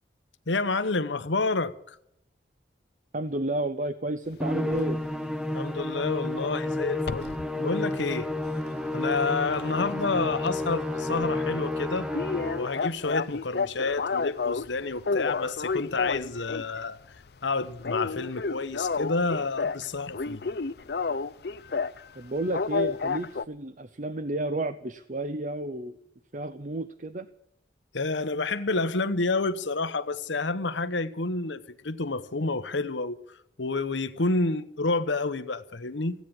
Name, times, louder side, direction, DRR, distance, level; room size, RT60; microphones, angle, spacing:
voice 1, 0.5-2.0 5.5-7.3 7.6-8.3 8.9-12.1 12.6-17.0 17.4-20.4 27.9-33.2 33.6-36.1, left 3 dB, 85° left, 1.1 m, -29 dB
voice 2, 3.1-5.0 22.2-26.0 26.3-27.3, right 2 dB, 45° right, 0.7 m, -31 dB
Musical instrument, 4.4-12.9, left 2 dB, 5° right, 0.8 m, -31 dB
sound 1, 4.7-4.9 7.0-7.5 7.9-10.0 10.3-10.5 10.8-10.9 11.2-11.3 11.6-11.7 12.1-14.7 15.0-16.8 17.1-17.4 17.7-19.9 20.1-22.0 22.5-23.4, left 4 dB, 60° left, 0.5 m, -30 dB
16.0 x 9.4 x 8.7 m
head